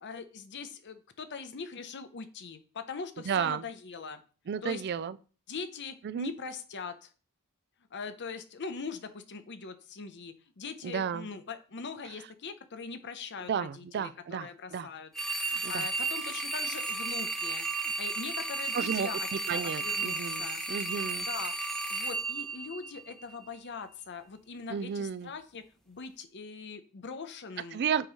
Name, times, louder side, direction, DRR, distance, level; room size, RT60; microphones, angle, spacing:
voice 1, 0.0-4.2 4.6-4.8 5.5-7.1 7.9-15.1 15.4-20.6 21.2-21.5 21.9-27.8, left 5 dB, 50° left, 0.7 m, -41 dB
voice 2, 3.3-3.6 4.5-5.2 6.0-6.3 10.8-11.3 13.5-14.9 15.6-15.9 18.7-21.3 24.7-25.3 27.7-28.1, right 7 dB, 45° right, 0.3 m, -33 dB
sound 1, 15.1-23.3, right 3 dB, ahead, 0.6 m, -33 dB
7.6 x 3.1 x 4.9 m
head